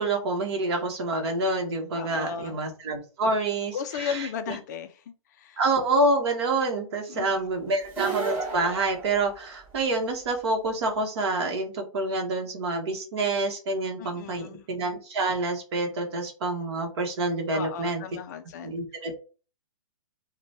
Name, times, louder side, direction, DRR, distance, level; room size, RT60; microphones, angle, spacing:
voice 1, 0.0-4.6 5.6-18.0 18.6-19.1, right 2 dB, 50° right, 1.1 m, -27 dB
voice 2, 1.9-2.6 3.7-5.6 7.1-7.3 7.7-7.8 14.0-14.7 17.5-18.8, left 7 dB, 30° left, 0.4 m, -35 dB
sound 1, 7.8-9.9, right 4 dB, 10° right, 0.9 m, -33 dB
3.0 x 2.2 x 4.0 m
hypercardioid pair, 155°, 18 cm